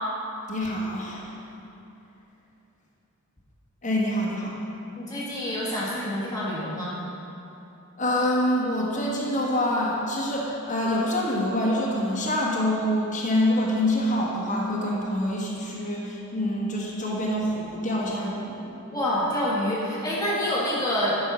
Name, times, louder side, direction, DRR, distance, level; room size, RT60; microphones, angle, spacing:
voice 1, 0.5-1.3 3.8-4.6 8.0-18.7, left 1 dB, 35° left, -4 dB, 1.4 m, -26 dB
voice 2, 5.0-6.9 18.9-21.2, left 1 dB, 15° left, -7 dB, 1.7 m, -27 dB
11.0 x 5.5 x 6.1 m, 2.8 s
head